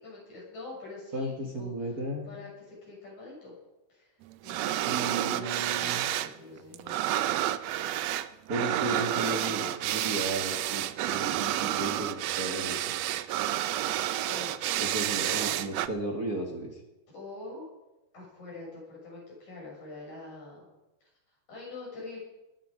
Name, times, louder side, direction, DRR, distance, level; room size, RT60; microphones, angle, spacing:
voice 1, 0.0-2.0 2.2-3.5 3.9-4.2 4.4-7.2 9.1-9.8 14.3-14.8 17.1-17.6 18.1-20.7 21.0-21.1 21.5-22.2, left 3 dB, 60° left, -4 dB, 8.2 m, -45 dB
voice 2, 1.1-2.4 4.8-6.0 8.5-12.8 14.8-16.8, right 2 dB, 35° right, 0 dB, 2.0 m, -34 dB
sound 1, 4.4-6.3 6.6-15.9, right 13 dB, 80° right, 1.5 m, -30 dB
20.5 x 11.5 x 5.1 m, 0.99 s
omnidirectional pair, 3.7 m